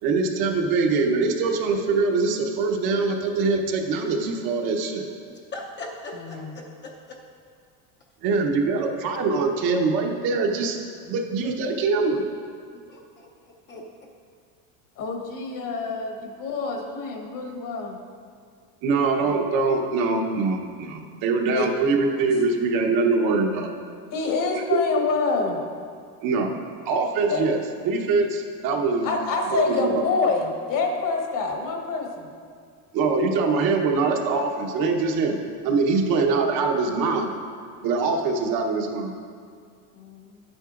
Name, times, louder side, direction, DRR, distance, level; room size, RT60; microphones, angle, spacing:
voice 1, 0.0-5.1 8.2-10.8 11.1-12.2 18.8-23.7 26.2-26.5 26.8-27.6 27.8-29.1 29.5-30.0 32.9-35.4 35.6-37.3 37.8-39.1, right 4 dB, 55° right, 2 dB, 1.1 m, -23 dB
voice 2, 5.5-7.2 12.9-13.8, left 2 dB, 25° left, -1 dB, 0.7 m, -40 dB
voice 3, 6.1-6.5 15.0-18.0 21.6-21.7 24.1-25.6 27.3-27.4 29.0-32.3 40.0-40.4, left 4 dB, 50° left, 2 dB, 1.3 m, -27 dB
11.0 x 9.0 x 2.5 m, 2.1 s
supercardioid pair, 135°, 43 cm